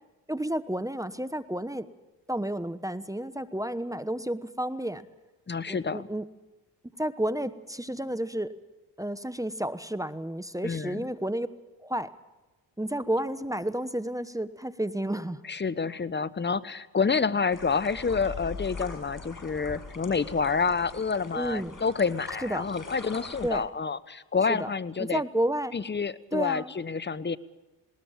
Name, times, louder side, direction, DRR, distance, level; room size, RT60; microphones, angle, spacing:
voice 1, 0.3-1.9 2.3-5.0 5.7-6.3 7.0-8.5 9.0-11.5 11.8-12.1 12.8-15.4 21.3-21.8 22.4-22.7 23.4-23.7 24.5-24.7 25.0-25.7 26.3-26.7, right 1 dB, 5° right, 13 dB, 1.0 m, -31 dB
voice 2, 5.5-6.1 10.6-11.0 15.5-25.2 25.7-27.4, left 5 dB, 25° left, 18 dB, 0.9 m, -28 dB
sound 1, 17.5-23.5, left 3 dB, 45° left, 6.5 m, -42 dB
20.5 x 19.0 x 7.4 m, 1.1 s
supercardioid pair, 50°, 45 cm